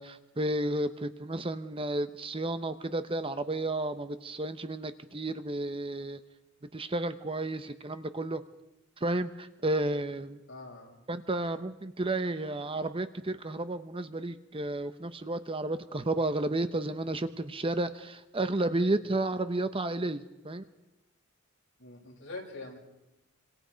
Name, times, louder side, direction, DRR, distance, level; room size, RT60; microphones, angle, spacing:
voice 1, 0.0-6.2 6.7-8.4 9.0-10.4 11.1-20.6, right 2 dB, 25° right, 11 dB, 0.9 m, -32 dB
voice 2, 10.5-11.0 19.0-19.2 21.8-22.8, left 2 dB, 60° left, -2 dB, 7.8 m, -44 dB
27.0 x 26.0 x 5.2 m, 0.94 s
head